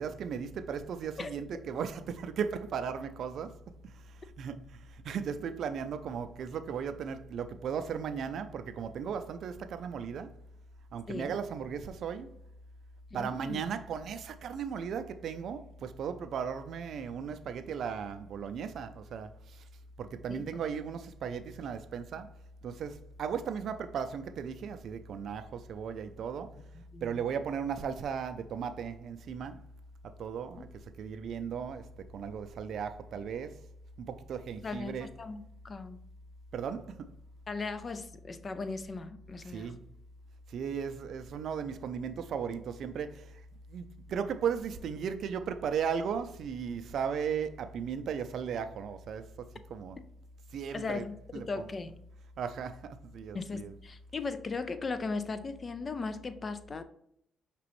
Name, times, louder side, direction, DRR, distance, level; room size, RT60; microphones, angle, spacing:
voice 1, 0.0-3.6 3.8-10.4 10.9-12.3 13.1-19.6 20.0-22.3 22.6-26.6 27.0-29.6 30.0-30.7 31.0-33.6 34.0-35.1 36.5-37.1 39.5-39.8 40.5-43.4 43.7-50.0 50.5-51.0 51.3-51.6 52.4-53.7, right 7 dB, 65° right, 0.4 m, -36 dB
voice 2, 13.1-13.6 20.3-20.4 26.7-27.2 34.6-36.0 37.5-39.7 50.7-52.0 53.3-56.8, left 4 dB, 35° left, 0.5 m, -38 dB
5.9 x 3.0 x 3.0 m
cardioid pair, 90°, 0 cm